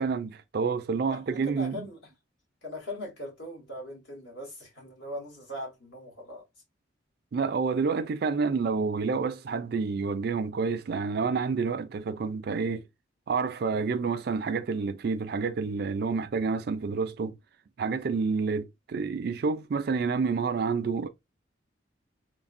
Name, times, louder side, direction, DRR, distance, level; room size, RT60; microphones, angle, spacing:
voice 1, 0.0-1.9 7.3-12.8 13.3-17.3 17.8-21.1, right 5 dB, 55° right, 0.3 m, -29 dB
voice 2, 1.1-2.0 2.6-6.4 13.7-14.0, left 1 dB, 70° left, 1.4 m, -40 dB
3.3 x 2.1 x 2.5 m
head